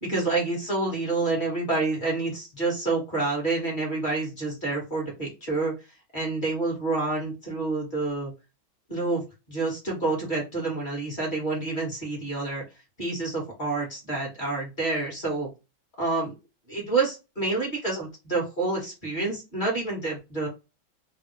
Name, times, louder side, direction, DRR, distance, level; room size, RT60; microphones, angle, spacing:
voice 1, 0.0-5.7 6.1-8.3 8.9-12.6 13.0-15.5 16.0-16.3 16.7-20.5, right 3 dB, 30° left, -2 dB, 1.4 m, -28 dB
3.4 x 2.3 x 3.1 m, 0.26 s
omnidirectional pair, 2.1 m